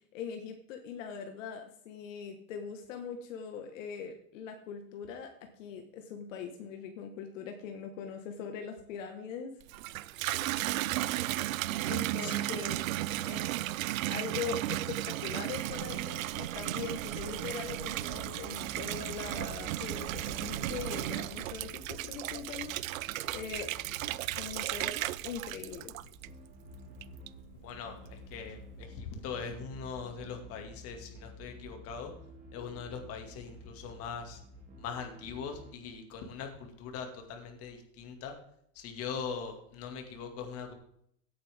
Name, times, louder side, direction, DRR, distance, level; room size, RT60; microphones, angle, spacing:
voice 1, 0.1-9.6 11.8-12.8 13.2-13.5 14.1-23.7 24.3-25.9, left 6 dB, 55° left, 5 dB, 1.7 m, -41 dB
Water tap faucet / Bathtub (filling or washing), 9.6-26.5 27.0-27.6, right 15 dB, 65° right, 0.6 m, -35 dB
sound 1, 12.4-22.2, right 8 dB, 45° right, 1.0 m, -50 dB
sound 2, 18.1-35.8, equal, 20° right, 2.5 m, -51 dB
voice 2, 27.6-32.1 32.5-34.4 34.8-38.3 38.8-40.7, left 6 dB, 30° left, 5 dB, 2.3 m, -41 dB
17.0 x 8.9 x 3.6 m, 0.70 s
supercardioid pair, 150°, 45 cm